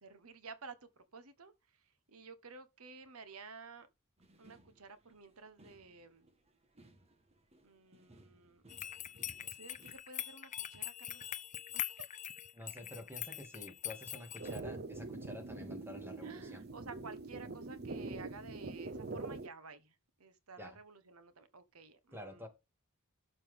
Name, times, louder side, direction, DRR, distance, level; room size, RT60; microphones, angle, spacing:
voice 1, 0.0-3.9 4.4-6.3 7.6-8.6 9.3-11.3 11.7-12.1 16.2-22.5, right 4 dB, 90° right, 1.3 m, -53 dB
sound 1, 4.2-10.0, right 1 dB, 30° right, 1.5 m, -64 dB
sound 2, 8.7-14.6, left 11 dB, 35° left, 0.7 m, -43 dB
voice 2, 12.5-16.6 20.6-20.8 22.1-22.5, left 1 dB, 10° right, 2.6 m, -49 dB
sound 3, 14.4-19.5, right 3 dB, 50° right, 0.7 m, -44 dB
12.5 x 6.7 x 3.6 m
head